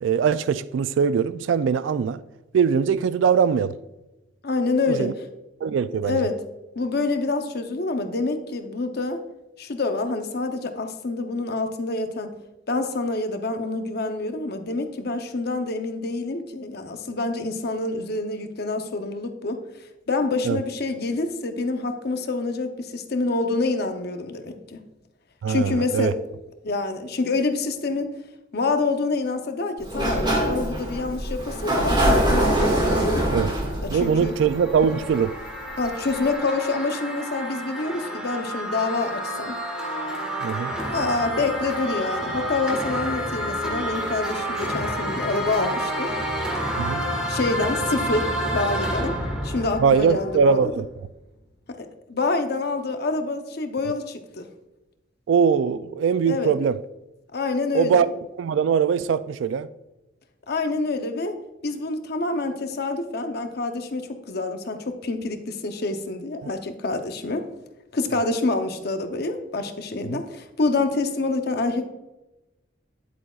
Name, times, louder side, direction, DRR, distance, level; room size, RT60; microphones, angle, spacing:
voice 1, 0.0-2.2 2.5-3.7 4.9-5.1 5.6-6.2 20.5-20.6 25.4-26.1 33.3-33.5 33.9-35.3 40.4-40.7 46.8-47.0 49.8-50.9 55.3-56.8 57.7-58.1 58.4-59.7 70.0-70.2, right 6 dB, 75° right, 0.3 m, -21 dB
voice 2, 4.4-5.1 6.0-6.4 6.8-9.2 9.6-12.3 12.7-19.6 20.1-24.8 25.5-26.1 26.6-28.1 28.5-33.3 33.8-34.3 35.8-39.6 40.9-46.1 47.3-49.2 49.4-50.7 51.7-54.5 56.3-56.5 57.3-58.0 60.5-61.3 61.6-67.5 67.9-71.9, left 3 dB, 55° left, 0.7 m, -27 dB
Sliding door, 29.8-35.5, right 1 dB, 25° right, 1.8 m, -24 dB
sound 1, 33.8-50.8, equal, 5° right, 1.5 m, -29 dB
10.5 x 8.1 x 2.4 m
head